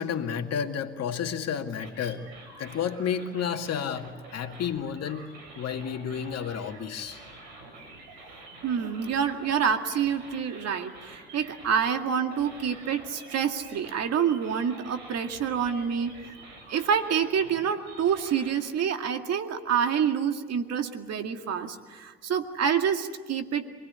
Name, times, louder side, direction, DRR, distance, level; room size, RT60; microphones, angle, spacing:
voice 1, 0.0-2.3 2.6-5.3 5.6-7.2, left 7 dB, 55° left, 5 dB, 2.2 m, -31 dB
sound 1, 1.8-18.5, right 2 dB, 75° right, 7.4 m, -48 dB
voice 2, 8.6-16.1 16.7-23.7, right 7 dB, 55° right, 6 dB, 2.1 m, -27 dB
27.0 x 19.5 x 9.6 m, 1.5 s
hypercardioid pair, 65°, 31 cm